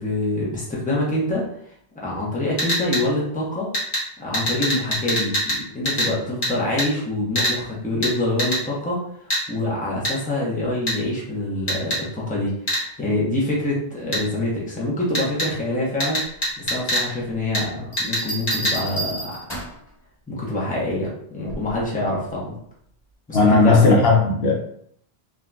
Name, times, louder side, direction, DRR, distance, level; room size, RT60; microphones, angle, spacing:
voice 1, 0.0-1.5 1.9-3.7 4.2-16.2 16.6-19.4 20.3-22.6 23.3-23.8, left 1 dB, 10° left, -5 dB, 0.8 m, -25 dB
sound 1, 2.6-3.0 3.7-4.0 4.3-5.6 5.9-6.1 6.4-6.5 6.8-6.9 7.4-7.6 8.0-8.1 8.4-8.6 9.3-9.4 10.0-10.1 10.9-11.0 11.7-12.0 12.7-12.8 14.1-14.2 15.1-15.5 16.0-17.1 17.5-17.6 18.0-18.2 18.5-18.8, equal, 50° left, 1.3 m, -23 dB
Bell, 17.9-19.9 21.5-21.8, right 1 dB, 30° left, 1.5 m, -31 dB
voice 2, 23.3-24.5, left 3 dB, 70° left, -1 dB, 0.9 m, -15 dB
3.6 x 2.6 x 2.3 m, 0.67 s
omnidirectional pair, 1.1 m